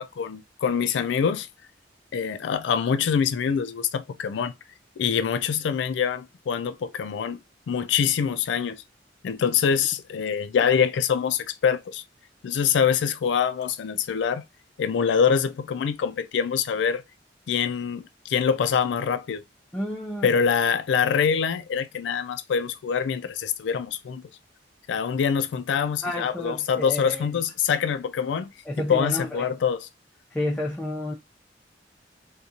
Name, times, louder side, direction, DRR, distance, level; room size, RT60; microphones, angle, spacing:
voice 1, 0.0-1.5 2.1-4.5 5.0-8.8 9.2-12.0 12.4-14.4 14.8-17.0 17.5-19.4 20.2-24.2 24.9-28.5 28.8-29.9, left 7 dB, 90° left, 0.3 m, -25 dB
voice 2, 19.7-20.3 26.0-27.3 28.7-29.5 30.3-31.1, left 1 dB, 10° left, 0.4 m, -30 dB
2.8 x 2.3 x 2.4 m
head